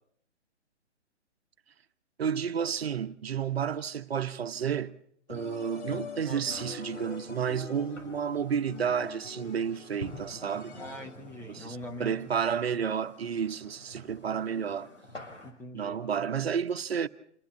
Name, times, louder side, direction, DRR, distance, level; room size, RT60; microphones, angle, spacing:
voice 1, 2.2-5.0 5.3-10.8 11.5-14.9 15.7-17.1, right 7 dB, 60° right, 1.1 m, -31 dB
sound 1, 5.3-11.4, left 5 dB, 25° left, 1.8 m, -44 dB
sound 2, 5.7-15.5, left 1 dB, 90° left, 6.4 m, -49 dB
voice 2, 6.2-6.5 10.7-12.2 15.4-16.0, left 1 dB, 5° left, 0.9 m, -42 dB
28.0 x 11.5 x 8.4 m
figure-of-eight pair, 135°, 36 cm